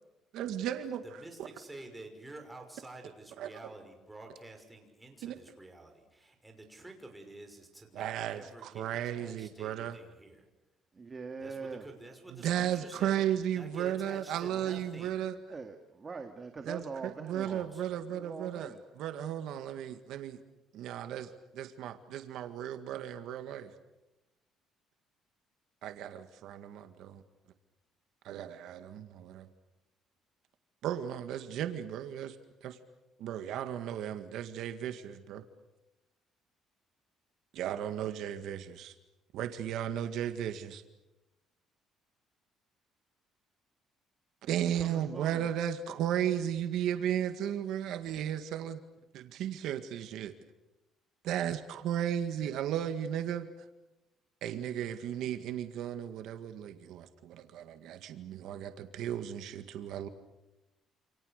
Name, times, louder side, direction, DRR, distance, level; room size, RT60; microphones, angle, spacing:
voice 1, 0.3-1.0 1.4-1.5 3.4-3.5 5.2-5.4 7.9-10.0 12.3-15.4 16.7-20.4 20.7-23.7 25.8-27.2 28.2-29.5 30.8-32.4 32.6-32.8 33.2-35.4 37.5-38.9 39.3-40.8 44.4-48.8 49.1-50.3 51.2-53.5 54.4-60.1, right 10 dB, 75° right, 8 dB, 1.9 m, -35 dB
voice 2, 1.1-10.5 11.4-13.1 13.4-15.2 17.4-17.8, right 2 dB, 10° right, 3 dB, 5.9 m, -49 dB
voice 3, 10.9-11.9 15.5-17.6 18.1-18.8 44.6-45.5, right 4 dB, 25° right, 5 dB, 2.1 m, -43 dB
28.5 x 28.0 x 6.7 m, 0.98 s
cardioid pair, 135°, 0 cm